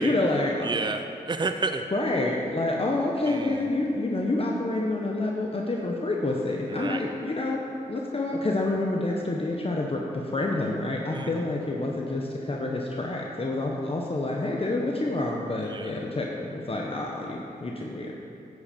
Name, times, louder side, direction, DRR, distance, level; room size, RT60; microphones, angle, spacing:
voice 1, 0.0-0.7 1.9-7.6 7.9-18.1, left 2 dB, 35° left, -1 dB, 1.1 m, -28 dB
voice 2, 0.6-1.8 3.3-3.7 6.7-7.0 11.1-11.3 15.6-15.9, right 3 dB, 30° right, 7 dB, 0.6 m, -31 dB
9.9 x 8.1 x 5.2 m, 2.6 s
cardioid pair, 55°, 16 cm